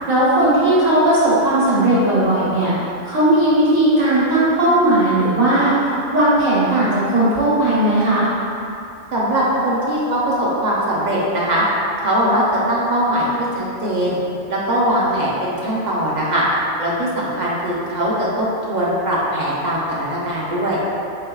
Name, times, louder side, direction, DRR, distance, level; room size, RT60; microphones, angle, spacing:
voice 1, 0.1-2.7 3.0-8.3, right 1 dB, 80° right, -10 dB, 1.6 m, -16 dB
voice 2, 9.1-11.6 12.0-14.2 14.5-16.4 16.8-20.8, right 1 dB, 50° right, -6 dB, 0.5 m, -20 dB
4.5 x 3.3 x 2.3 m, 2.7 s
omnidirectional pair, 1.3 m